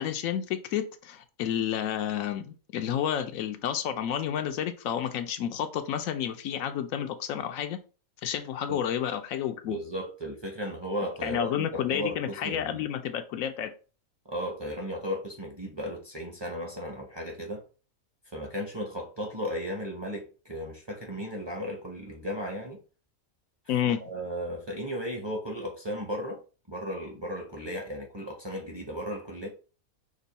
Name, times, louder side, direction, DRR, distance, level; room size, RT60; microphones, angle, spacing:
voice 1, 0.0-7.8 8.2-9.8 11.2-13.7 23.7-24.0, left 9 dB, 75° left, 1.0 m, -30 dB
voice 2, 9.7-12.9 14.3-17.6 18.3-22.8 24.0-26.4 26.7-29.5, equal, 25° right, 0.7 m, -35 dB
5.3 x 2.5 x 4.0 m
omnidirectional pair, 1.5 m